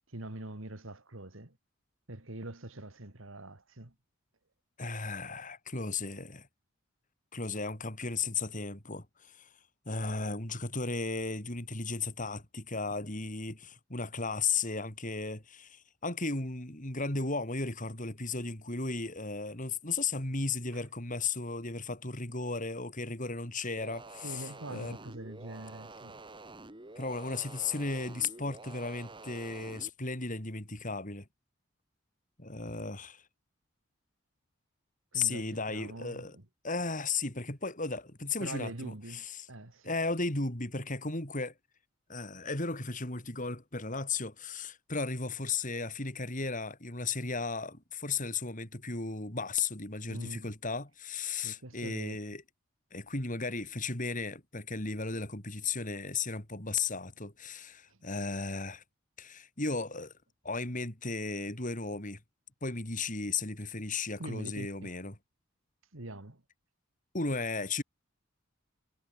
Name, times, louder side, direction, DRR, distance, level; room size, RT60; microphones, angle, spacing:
voice 1, 0.1-1.6 2.1-3.9 20.7-20.8 24.2-26.2 35.1-36.5 38.4-39.9 50.1-50.5 51.4-52.2 57.9-58.0 64.2-64.9 65.9-66.4, right 1 dB, 70° right, 2.5 m, -44 dB
voice 2, 4.8-6.5 7.3-9.5 9.9-24.9 27.0-31.3 32.4-33.2 35.1-36.4 36.6-39.5 39.8-41.5 42.1-52.4 52.9-58.8 59.2-60.1 60.4-62.2 62.6-65.1 67.1-67.8, left 4 dB, 40° left, 4.5 m, -35 dB
sound 1, 23.8-29.9, right 2 dB, 25° right, 2.2 m, -49 dB
head